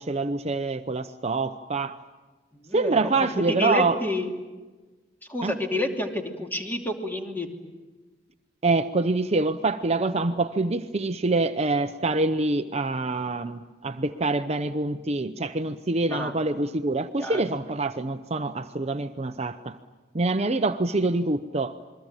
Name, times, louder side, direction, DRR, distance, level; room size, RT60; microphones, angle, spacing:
voice 1, 0.0-2.0 2.7-4.0 5.4-5.6 8.6-19.8 20.1-21.8, right 3 dB, 35° right, 8 dB, 0.8 m, -26 dB
voice 2, 2.5-4.3 5.3-7.5 16.0-16.3 17.2-17.4, left 1 dB, 10° left, 3 dB, 2.9 m, -29 dB
28.0 x 22.5 x 9.0 m, 1.3 s
head